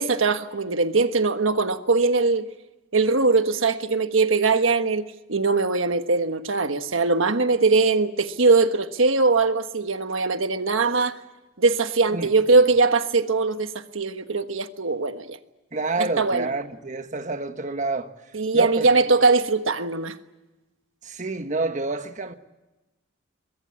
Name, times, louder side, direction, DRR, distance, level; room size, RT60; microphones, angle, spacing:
voice 1, 0.0-2.5 2.9-11.2 11.6-15.4 16.0-16.5 18.3-20.2, right 3 dB, 70° right, 1.3 m, -21 dB
voice 2, 12.1-12.6 15.7-18.1 18.5-19.0 21.0-22.3, right 3 dB, 35° right, 1.4 m, -29 dB
23.0 x 22.0 x 8.4 m
head